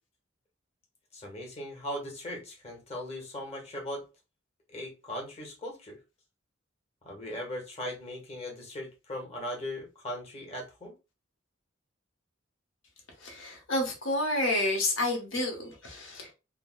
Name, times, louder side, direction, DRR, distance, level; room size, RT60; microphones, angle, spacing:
voice 1, 1.1-4.0 4.7-6.0 7.0-10.9, left 1 dB, 35° left, 1.0 m, -38 dB
voice 2, 13.2-16.3, left 1 dB, 85° left, 1.0 m, -30 dB
3.4 x 2.2 x 2.4 m
head